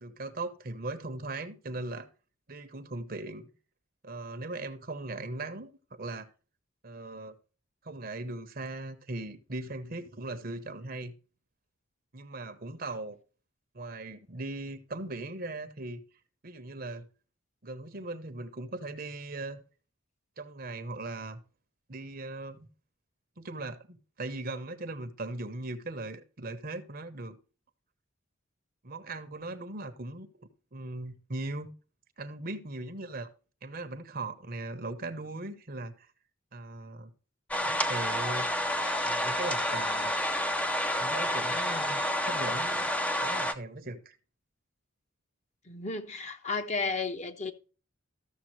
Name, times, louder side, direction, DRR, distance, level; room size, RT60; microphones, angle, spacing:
voice 1, 0.0-2.1 2.5-3.5 4.0-6.3 6.8-7.4 7.8-11.1 12.1-13.2 13.7-16.0 16.4-17.1 17.6-19.6 20.4-21.4 21.9-22.7 23.4-27.4 28.8-31.7 32.2-33.3 33.6-36.1 36.5-37.1 37.6-38.5 39.0-40.1 41.0-42.9 43.2-44.2, right 2 dB, 45° right, 0.9 m, -39 dB
sound 1, 37.5-43.5, left 1 dB, 5° left, 0.6 m, -29 dB
voice 2, 45.7-47.5, left 4 dB, 35° left, 1.0 m, -33 dB
13.5 x 6.9 x 3.1 m
head